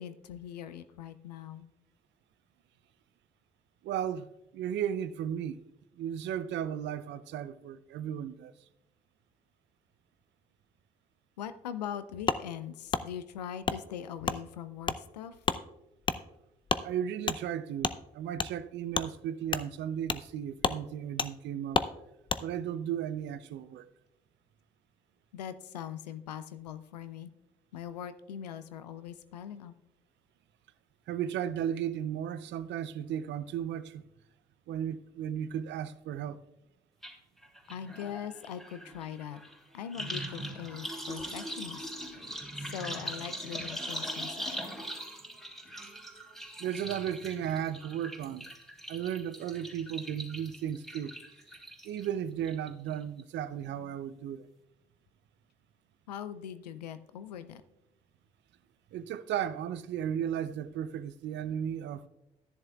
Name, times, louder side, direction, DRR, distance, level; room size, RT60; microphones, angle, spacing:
voice 1, 0.0-1.7 11.4-15.4 25.3-27.3 27.7-29.7 37.7-39.4 39.7-41.9 42.6-44.5 56.1-57.6, left 9 dB, 90° left, 0.4 m, -41 dB
voice 2, 3.8-5.6 6.0-8.5 16.8-21.8 22.4-23.9 31.1-34.0 34.7-36.4 42.2-42.4 46.6-48.5 48.9-51.2 51.8-54.5 58.9-62.1, right 9 dB, 65° right, 0.6 m, -35 dB
Wood, 12.3-12.4 12.9-13.0 13.6-13.8 14.2-14.4 14.8-15.0 15.4-15.6 16.0-16.2 16.7-16.8 17.3-17.4 17.8-18.0 18.4-18.5 18.9-19.1 19.5-19.7 20.1-20.3 20.6-20.8 21.2-21.3 21.7-21.9 22.3-22.4, left 4 dB, 25° left, 0.6 m, -30 dB
sound 1, 37.0-37.1 37.4-52.1 52.4-52.9 53.2-53.3, equal, ahead, 3.2 m, -41 dB
13.0 x 10.5 x 2.3 m
hypercardioid pair, 45°, 20 cm